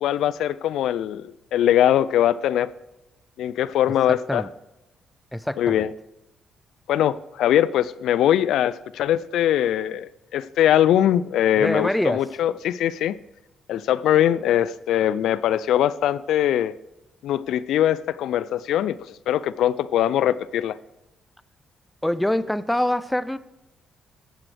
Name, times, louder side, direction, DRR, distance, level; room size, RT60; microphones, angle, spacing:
voice 1, 0.0-2.7 3.4-4.4 5.6-5.9 6.9-13.2 13.7-16.7 17.2-19.0 19.3-20.8, left 11 dB, 80° left, 0.3 m, -21 dB
voice 2, 4.1-4.5 5.3-5.9 11.6-12.2 22.0-23.4, left 1 dB, 5° left, 0.5 m, -24 dB
12.0 x 8.8 x 3.3 m
cardioid pair, 90°, 0 cm